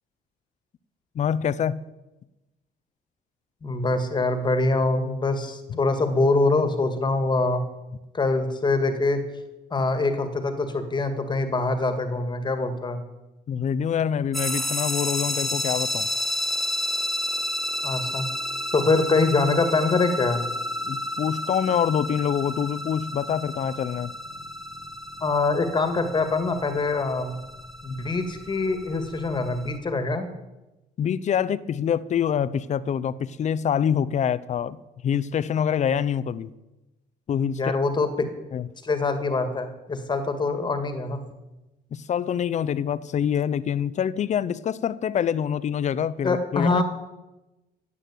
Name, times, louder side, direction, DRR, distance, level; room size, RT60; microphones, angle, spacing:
voice 1, 1.1-1.8 5.7-5.8 13.5-16.1 20.8-24.1 31.0-34.8 35.0-36.5 37.3-37.7 38.5-38.7 41.9-46.8, left 8 dB, 45° left, 0.7 m, -25 dB
voice 2, 3.6-7.6 8.1-9.2 9.7-13.0 17.8-18.3 18.7-20.4 25.2-27.4 27.8-30.3 37.6-38.3 38.8-41.2 46.2-46.8, left 3 dB, 25° left, 1.9 m, -24 dB
sound 1, 14.3-29.8, left 1 dB, ahead, 1.5 m, -31 dB
14.5 x 8.6 x 8.4 m
cardioid pair, 110°, 17 cm